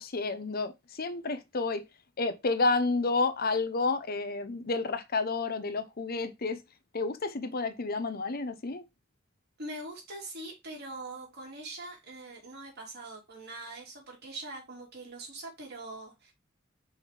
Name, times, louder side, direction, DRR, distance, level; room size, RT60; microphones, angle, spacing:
voice 1, 0.0-1.9 2.2-6.6 6.9-8.8, left 3 dB, 50° left, 0.8 m, -30 dB
voice 2, 9.6-16.3, right 2 dB, 55° right, 3.2 m, -43 dB
5.5 x 3.4 x 5.0 m
head